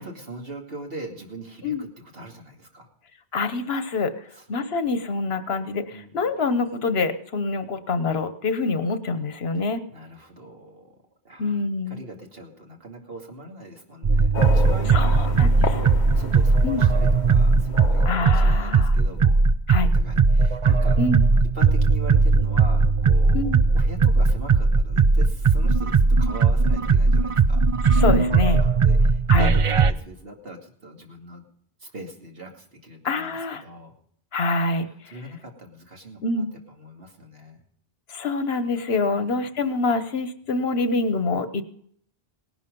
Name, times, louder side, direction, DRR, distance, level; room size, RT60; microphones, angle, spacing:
voice 1, 0.0-2.9 4.3-4.5 5.9-6.3 9.9-10.9 11.2-19.4 19.9-21.0 21.5-27.6 27.9-31.4 31.8-33.9 34.8-37.6 39.0-39.4, right 1 dB, 65° right, 1 dB, 2.7 m, -41 dB
voice 2, 3.3-4.1 4.5-9.8 11.4-12.0 14.9-15.7 16.6-16.8 18.0-18.9 19.7-19.9 21.0-21.2 23.3-23.6 28.0-28.6 29.3-29.5 33.0-33.6 34.3-34.9 36.2-36.5 38.1-41.6, left 3 dB, 75° left, 11 dB, 1.3 m, -25 dB
sound 1, 14.0-29.9, right 4 dB, 40° right, 0.6 m, -19 dB
sound 2, 14.3-19.2, left 4 dB, 50° left, 1.0 m, -34 dB
18.0 x 11.5 x 5.3 m, 0.63 s
omnidirectional pair, 1.0 m